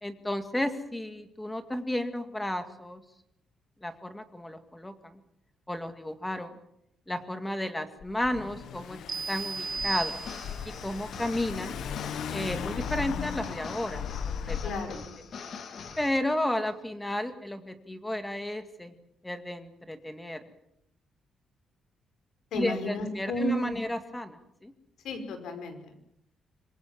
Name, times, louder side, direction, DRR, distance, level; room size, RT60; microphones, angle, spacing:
voice 1, 0.0-3.0 3.8-5.2 5.7-6.6 7.1-9.0 9.3-10.2 10.6-11.8 12.3-15.0 16.0-18.9 19.2-20.4 22.5-24.7, left 1 dB, 5° left, 8 dB, 2.0 m, -33 dB
Car / Engine, 8.0-14.9, left 7 dB, 70° left, 1.7 m, -37 dB
sound 1, 9.1-10.8, right 4 dB, 35° right, 1.4 m, -34 dB
sound 2, 10.2-16.2, left 5 dB, 45° left, 2.2 m, -44 dB
voice 2, 14.6-15.0 15.2-15.3 22.5-23.8 25.0-26.0, left 1 dB, 85° left, 8 dB, 5.3 m, -33 dB
26.0 x 22.5 x 7.5 m, 0.75 s
cardioid pair, 175°, 0 cm